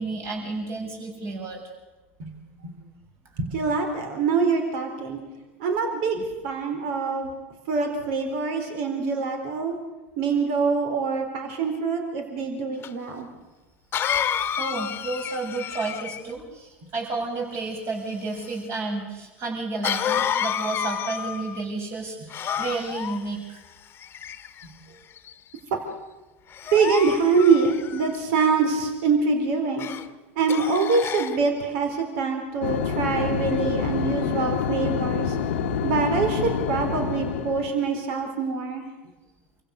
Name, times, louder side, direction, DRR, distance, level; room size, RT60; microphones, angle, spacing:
voice 1, 0.0-1.6 6.2-6.3 14.6-23.6, right 3 dB, 45° right, 1 dB, 7.5 m, -31 dB
voice 2, 3.4-5.2 5.6-6.2 6.4-7.3 7.7-9.7 10.2-13.3 24.6-24.7 26.7-29.9 30.4-35.4 35.8-38.8, right 4 dB, 70° right, 4 dB, 4.2 m, -24 dB
Cough, 12.8-12.9 13.9-16.3 19.8-21.6 22.3-23.2 24.0-24.6 25.2-25.5 26.5-28.2 29.8-30.0 30.5-31.4, left 8 dB, 35° left, 1.3 m, -29 dB
sound 1, 32.6-37.8, left 6 dB, 85° left, 1.1 m, -27 dB
27.5 x 16.0 x 6.7 m, 1.2 s
hypercardioid pair, 95°, 6 cm